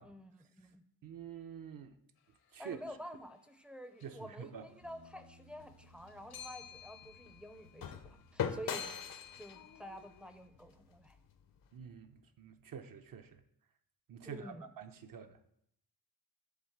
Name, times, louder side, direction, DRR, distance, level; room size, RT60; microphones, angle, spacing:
voice 1, 0.0-0.8 2.6-8.9 9.4-11.2 14.2-14.7, equal, 5° right, 0.5 m, -49 dB
voice 2, 1.0-2.0 2.5-2.8 4.0-4.7 11.7-13.4 14.1-15.5, right 7 dB, 60° right, 0.8 m, -48 dB
sound 1, 2.7-2.9 4.0-4.4 4.7-10.5, left 8 dB, 80° left, 1.3 m, -54 dB
sound 2, 4.8-11.1, right 1 dB, 80° right, 4.3 m, -65 dB
sound 3, 5.6-11.7, left 8 dB, 60° left, 0.8 m, -43 dB
11.0 x 4.0 x 7.2 m
wide cardioid pair, 160°, 38 cm